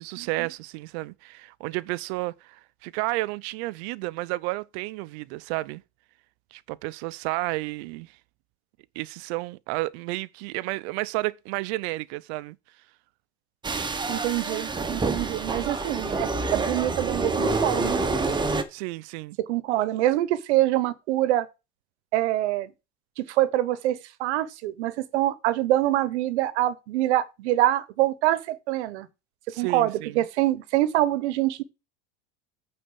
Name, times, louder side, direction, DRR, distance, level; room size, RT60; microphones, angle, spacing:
voice 1, 0.0-5.8 6.5-8.2 9.0-12.6 18.7-19.4 29.5-30.3, right 21 dB, 70° right, 0.6 m, -32 dB
sound 1, 13.6-18.6, right 3 dB, 15° right, 1.0 m, -27 dB
voice 2, 14.1-18.2 19.4-21.5 22.1-22.7 23.2-29.1 29.6-31.6, right 14 dB, 90° right, 1.0 m, -25 dB
8.9 x 4.3 x 6.8 m
supercardioid pair, 125°, 33 cm